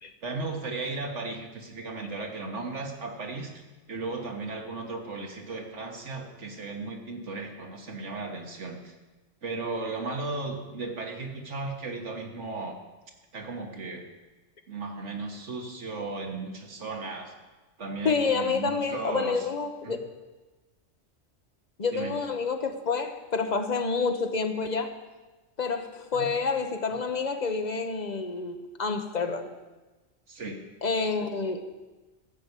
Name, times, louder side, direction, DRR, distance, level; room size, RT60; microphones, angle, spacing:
voice 1, 0.2-3.6 3.9-8.9 9.4-12.8 13.3-14.0 14.7-17.3 17.8-19.5 19.8-20.0 21.9-22.1 26.1-26.3 30.3-30.6, right 3 dB, 80° right, 2 dB, 1.9 m, -35 dB
voice 2, 18.0-20.0 21.8-24.9 25.6-29.5 30.8-31.6, left 4 dB, 40° left, 6 dB, 1.0 m, -28 dB
14.0 x 6.0 x 8.2 m, 1.2 s
omnidirectional pair, 1.2 m